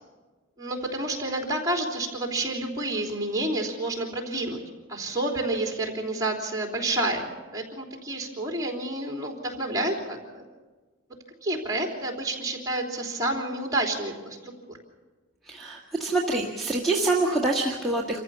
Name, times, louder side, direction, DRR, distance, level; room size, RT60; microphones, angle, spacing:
voice 1, 0.6-4.6 4.9-10.4 11.4-14.8, right 1 dB, 15° right, 1 dB, 3.5 m, -29 dB
voice 2, 15.5-18.2, right 2 dB, ahead, -1 dB, 1.6 m, -26 dB
27.0 x 15.0 x 7.2 m, 1.3 s
head